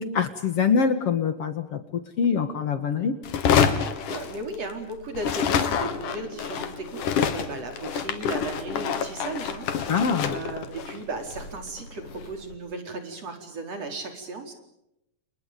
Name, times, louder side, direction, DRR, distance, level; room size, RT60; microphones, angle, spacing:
voice 1, 0.0-3.1 9.9-10.4, left 6 dB, 50° left, 9 dB, 2.5 m, -24 dB
sound 1, 3.2-4.9 5.1-12.4, left 7 dB, 85° left, 3.5 m, -27 dB
voice 2, 4.1-9.9 10.2-14.5, right 2 dB, 50° right, 4 dB, 5.3 m, -35 dB
30.0 x 29.5 x 5.3 m, 0.86 s
omnidirectional pair, 3.6 m